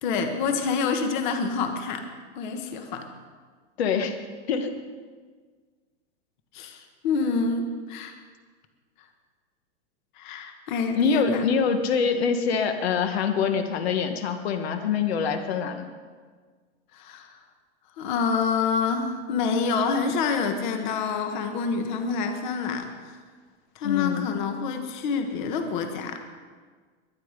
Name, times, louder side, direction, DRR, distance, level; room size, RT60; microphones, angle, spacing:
voice 1, 0.0-2.0 2.3-3.1 6.5-8.1 10.2-11.5 16.9-17.4 18.0-23.2 23.7-26.2, left 5 dB, 45° left, 6 dB, 1.5 m, -27 dB
voice 2, 3.8-4.2 4.5-4.7 10.9-15.9 23.8-24.3, left 6 dB, 65° left, 6 dB, 1.5 m, -25 dB
22.5 x 10.0 x 5.1 m, 1.5 s
supercardioid pair, 170°, 34 cm